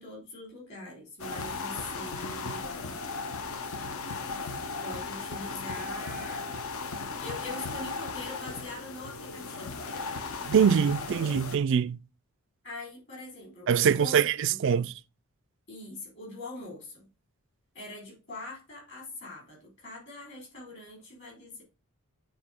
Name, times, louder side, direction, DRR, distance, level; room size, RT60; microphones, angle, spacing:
voice 1, 0.0-2.9 4.8-6.4 7.2-10.1 12.6-14.2 14.5-14.9 15.7-17.1 17.7-21.6, left 2 dB, 50° left, 3.9 m, -43 dB
sound 1, 1.2-11.6, left 4 dB, 70° left, 0.8 m, -36 dB
voice 2, 10.5-12.0 13.7-14.9, right 7 dB, 55° right, 0.3 m, -23 dB
8.7 x 3.8 x 3.6 m
head